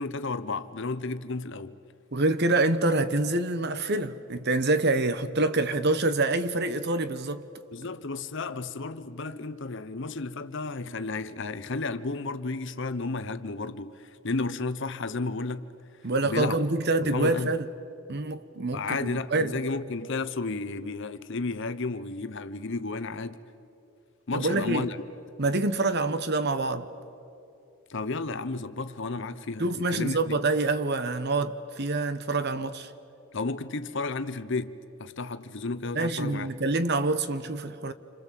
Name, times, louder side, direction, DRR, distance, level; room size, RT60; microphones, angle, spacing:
voice 1, 0.0-1.8 7.7-15.7 16.2-16.6 17.0-17.5 18.7-23.4 24.3-25.0 27.9-30.3 33.3-36.5, left 3 dB, 55° left, 0.9 m, -32 dB
voice 2, 2.1-7.5 16.0-17.7 18.1-19.5 24.3-24.9 25.4-26.9 29.6-32.9 35.9-37.9, right 2 dB, 50° right, 1.0 m, -26 dB
28.5 x 26.0 x 7.5 m
head